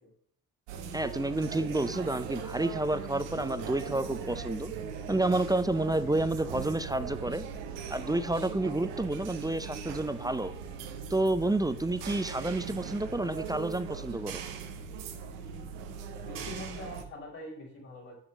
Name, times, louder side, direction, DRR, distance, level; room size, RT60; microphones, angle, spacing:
sound 1, 0.7-17.0, right 6 dB, 80° right, 0.9 m, -39 dB
voice 1, 0.9-4.7 5.1-7.4 7.9-10.5 11.1-14.4, right 2 dB, 10° right, 12 dB, 0.5 m, -30 dB
voice 2, 16.2-18.2, left 1 dB, 75° left, -9 dB, 3.0 m, -43 dB
6.3 x 6.0 x 5.3 m, 0.66 s
hypercardioid pair, 40°, 44 cm